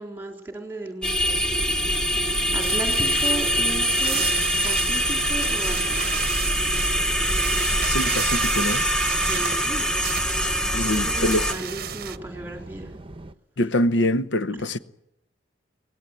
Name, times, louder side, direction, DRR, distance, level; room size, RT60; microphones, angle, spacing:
voice 1, 0.0-1.4 2.5-4.2 4.6-6.2 9.2-10.0 10.4-12.9, right 1 dB, 10° right, 3.7 m, -35 dB
sound 1, 1.0-11.5, equal, 5° left, 1.1 m, -23 dB
sound 2, 1.3-13.3, right 1 dB, 30° right, 1.0 m, -41 dB
sound 3, 2.6-12.2, right 10 dB, 55° right, 0.8 m, -34 dB
voice 2, 7.8-8.8 10.7-11.6 13.6-14.8, left 1 dB, 75° left, 0.9 m, -24 dB
24.0 x 19.5 x 9.1 m
head